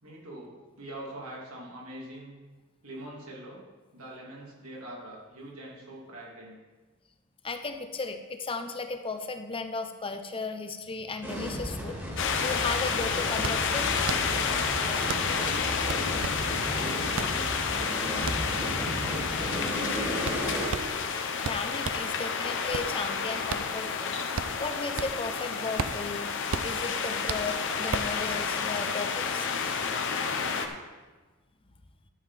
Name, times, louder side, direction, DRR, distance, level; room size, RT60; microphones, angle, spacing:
voice 1, 0.0-2.4 2.8-3.6 3.9-6.6 15.2-18.5 18.9-20.8, right 1 dB, 85° right, -4 dB, 2.8 m, -44 dB
voice 2, 7.4-13.9 21.4-26.3 26.6-29.5, left 3 dB, 25° left, 7 dB, 0.7 m, -35 dB
sound 1, 11.2-20.7, equal, 10° right, 1.9 m, -34 dB
sound 2, 12.2-30.7, left 6 dB, 60° left, 0.8 m, -30 dB
sound 3, 13.4-22.1 22.5-25.3 25.6-28.2, right 5 dB, 65° right, 0.5 m, -36 dB
11.5 x 7.4 x 4.2 m, 1.3 s
head